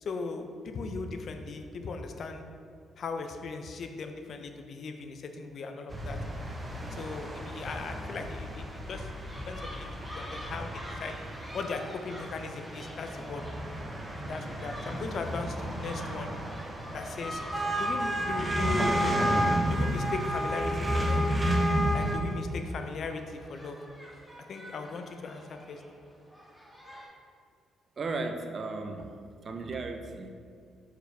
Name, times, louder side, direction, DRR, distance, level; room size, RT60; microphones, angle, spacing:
voice 1, 0.0-2.4 3.0-6.2 6.9-9.1 9.5-11.1 11.5-13.4 14.2-16.3 16.9-17.4 17.8-19.2 19.7-21.2 21.9-23.8 24.5-25.8, left 4 dB, 55° left, 6 dB, 0.5 m, -38 dB
sound 1, 5.9-22.1, equal, 20° right, 0.9 m, -31 dB
sound 2, 8.9-27.1, equal, 5° left, 1.5 m, -47 dB
voice 2, 28.0-29.1 29.4-30.3, right 3 dB, 45° right, 6 dB, 0.5 m, -35 dB
6.2 x 4.8 x 3.3 m, 2.2 s
cardioid pair, 90°, 0 cm